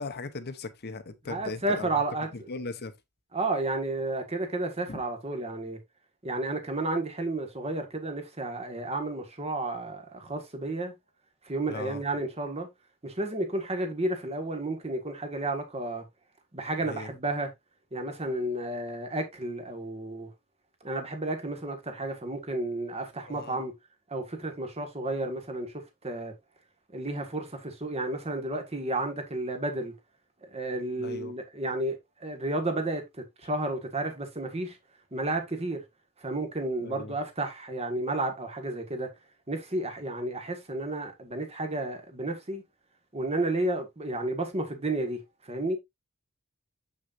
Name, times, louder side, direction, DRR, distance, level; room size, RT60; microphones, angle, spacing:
voice 1, 0.0-1.9 2.3-2.9 4.9-5.0 11.7-12.0 16.8-17.1 23.3-23.6 31.0-31.3 36.8-37.2, left 3 dB, 45° left, 0.9 m, -38 dB
voice 2, 1.3-2.5 3.3-5.8 6.2-10.9 11.4-12.7 13.0-16.0 16.5-17.5 17.9-20.3 20.8-23.7 24.1-26.3 26.9-29.9 30.4-34.8 35.1-35.8 36.2-39.1 39.5-42.6 43.1-45.8, right 2 dB, 30° right, 1.6 m, -32 dB
7.3 x 6.3 x 2.6 m
head